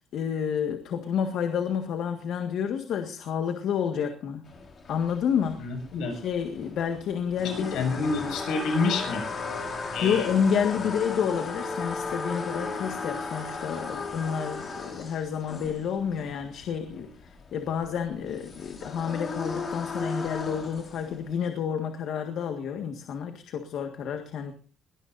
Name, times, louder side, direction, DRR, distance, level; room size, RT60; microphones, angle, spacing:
voice 1, 0.1-4.4 4.9-5.6 6.1-7.8 10.0-24.5, left 7 dB, 65° left, 5 dB, 1.7 m, -29 dB
sound 1, 4.5-21.3, left 4 dB, 35° left, 4.2 m, -36 dB
voice 2, 5.6-6.1 7.4-9.2 9.9-10.3 10.7-10.9, left 4 dB, 80° left, 6 dB, 6.7 m, -29 dB
22.0 x 19.0 x 2.7 m, 0.38 s
cardioid pair, 175°, 0 cm